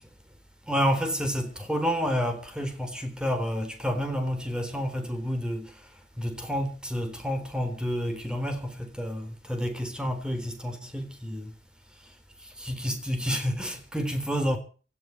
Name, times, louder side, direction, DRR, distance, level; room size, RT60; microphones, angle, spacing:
voice 1, 0.7-5.7 6.2-11.5 12.6-14.6, equal, 5° right, 3.8 m, -29 dB
17.0 x 8.3 x 9.4 m
head